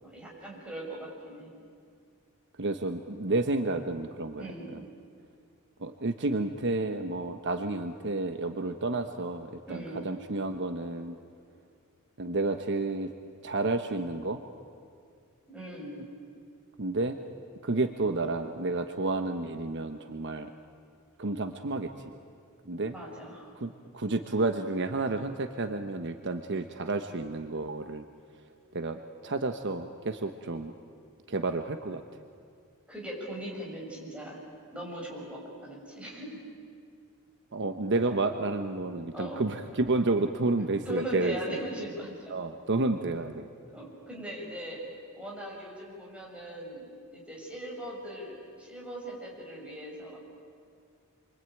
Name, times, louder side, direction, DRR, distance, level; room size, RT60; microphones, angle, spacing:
voice 1, 0.0-1.5 4.4-4.7 9.7-10.1 15.5-16.1 22.9-23.5 32.9-34.4 34.7-36.4 39.1-39.5 40.8-42.3 43.7-44.8 45.1-46.9 47.1-50.2, right 1 dB, 5° right, -3 dB, 6.6 m, -39 dB
voice 2, 2.6-4.8 5.8-11.2 12.2-13.1 13.4-14.4 16.8-17.2 17.6-20.5 21.2-22.1 22.7-22.9 23.6-28.0 28.7-30.7 31.3-32.0 37.5-41.4 42.3-43.5, right 2 dB, 55° right, 7 dB, 1.0 m, -30 dB
27.5 x 23.5 x 9.2 m, 2.3 s
head